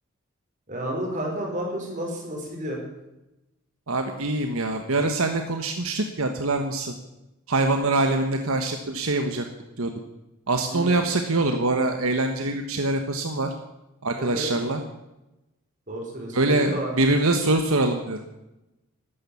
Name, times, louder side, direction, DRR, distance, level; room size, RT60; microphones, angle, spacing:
voice 1, 0.7-2.8 10.7-10.9 14.2-14.5 15.9-16.9, right 1 dB, 35° right, 1 dB, 5.0 m, -31 dB
voice 2, 3.9-6.9 7.5-9.4 9.8-9.9 10.5-13.5 14.0-14.8 16.3-18.2, right 2 dB, 70° right, 5 dB, 1.4 m, -24 dB
12.5 x 12.5 x 8.6 m, 0.95 s
head